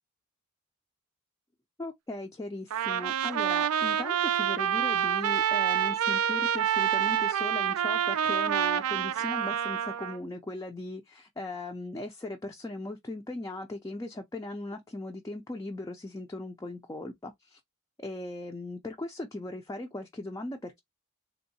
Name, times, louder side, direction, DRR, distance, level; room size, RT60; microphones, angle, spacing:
voice 1, 1.8-17.6 18.0-20.8, left 2 dB, 15° left, 0.4 m, -38 dB
Trumpet, 2.7-10.2, right 9 dB, 85° right, 0.4 m, -27 dB
3.5 x 2.7 x 2.7 m
head